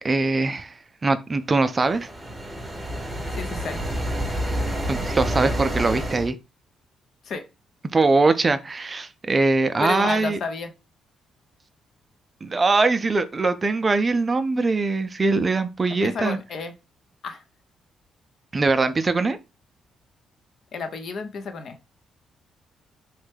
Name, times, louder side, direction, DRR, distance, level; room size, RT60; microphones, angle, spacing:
voice 1, 0.0-2.1 4.9-6.4 7.9-10.4 12.4-16.4 18.5-19.4, right 3 dB, 30° right, 0.3 m, -22 dB
sound 1, 1.6-6.3, equal, 10° right, 0.7 m, -28 dB
voice 2, 3.3-3.8 7.2-7.4 9.8-10.7 16.0-16.7 17.2-17.4 20.7-21.8, left 4 dB, 60° left, 0.6 m, -31 dB
3.1 x 2.2 x 3.2 m
cardioid pair, 90°, 0 cm